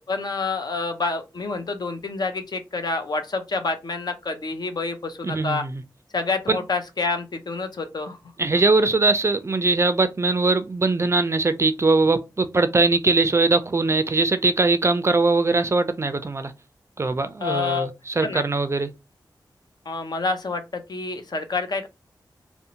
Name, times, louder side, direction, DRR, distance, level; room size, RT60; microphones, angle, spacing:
voice 1, 0.0-5.6 6.1-8.2 17.4-17.9 18.2-18.4 19.9-21.9, left 4 dB, 60° left, 0.5 m, -28 dB
voice 2, 5.2-5.8 6.5-6.6 8.4-16.5 17.0-18.9, right 3 dB, 35° right, 0.3 m, -21 dB
2.5 x 2.0 x 2.8 m
cardioid pair, 55°, 8 cm